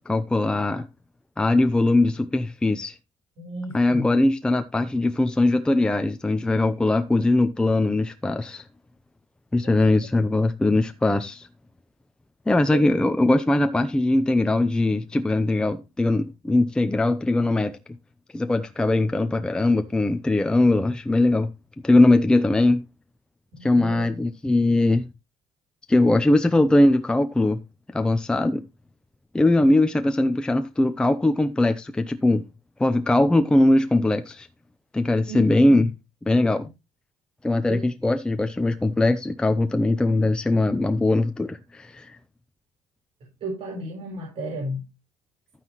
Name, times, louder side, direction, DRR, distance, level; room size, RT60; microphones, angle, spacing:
voice 1, 0.1-0.9 1.4-2.9 3.7-8.6 9.5-11.5 12.5-17.8 18.3-21.5 21.8-22.8 23.6-25.1 25.9-27.6 27.9-28.6 29.3-32.5 32.8-34.5 34.9-35.9 36.2-36.7 37.4-42.2, left 2 dB, 5° left, 0.6 m, -21 dB
voice 2, 3.4-4.1 9.6-9.8 12.5-12.9 23.5-24.1 35.3-35.9 37.7-37.8 43.4-44.8, right 1 dB, 45° right, 4.2 m, -34 dB
11.5 x 9.6 x 3.0 m
cardioid pair, 170°, 13 cm